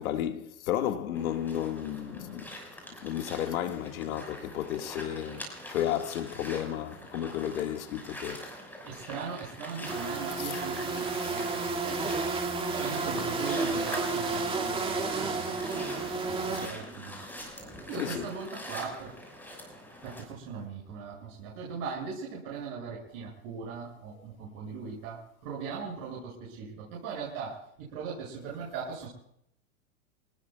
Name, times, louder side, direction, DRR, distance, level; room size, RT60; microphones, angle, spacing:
voice 1, 0.0-2.4 3.0-8.4 10.4-10.5 10.9-11.3 16.5-16.9 18.0-18.3, left 11 dB, 65° left, 2.2 m, -33 dB
sound 1, 1.1-20.2, left 1 dB, 5° left, 6.0 m, -44 dB
voice 2, 8.9-12.0 12.7-15.6 16.3-17.2 17.9-19.1 20.0-29.1, right 5 dB, 45° right, 7.9 m, -39 dB
sound 2, 9.8-16.7, right 3 dB, 10° right, 2.6 m, -31 dB
27.5 x 19.5 x 2.5 m
hypercardioid pair, 130°, 44 cm